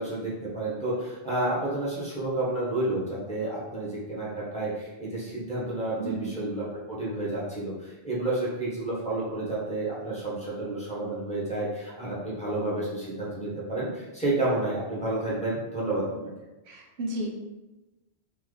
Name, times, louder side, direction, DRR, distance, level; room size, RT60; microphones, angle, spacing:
voice 1, 0.0-16.3, right 2 dB, 5° left, -8 dB, 1.1 m, -30 dB
voice 2, 6.0-6.5 16.6-17.3, right 1 dB, 85° right, 1 dB, 1.0 m, -33 dB
3.4 x 2.7 x 3.9 m, 1.1 s
omnidirectional pair, 1.0 m